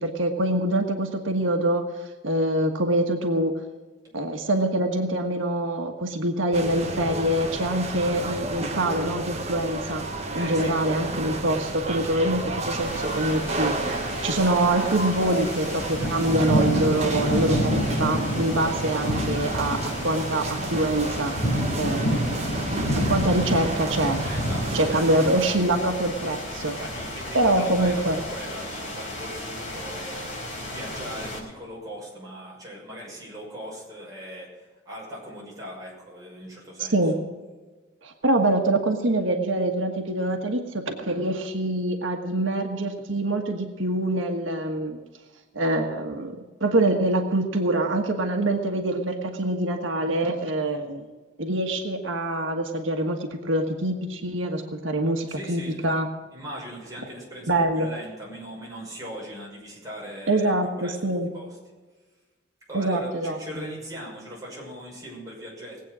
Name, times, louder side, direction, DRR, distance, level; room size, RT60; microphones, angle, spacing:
voice 1, 0.0-1.8 2.2-3.5 4.1-10.0 10.3-13.7 14.2-21.3 21.7-22.4 23.0-24.2 24.7-26.8 27.3-28.2 36.8-37.2 38.0-45.0 45.5-51.0 51.4-56.1 57.5-57.9 60.3-61.3 62.7-63.4, right 1 dB, 90° right, 4 dB, 1.4 m, -25 dB
sound 1, 6.5-25.6, right 2 dB, 35° right, 1.4 m, -32 dB
voice 2, 10.4-10.8 24.2-25.1 26.8-28.0 28.3-37.0 55.3-55.9 56.3-61.0 61.3-61.5 62.7-65.8, equal, 20° right, -4 dB, 6.1 m, -39 dB
sound 2, 12.8-31.4, equal, 35° left, 4.3 m, -29 dB
20.0 x 8.5 x 6.2 m, 1.3 s
head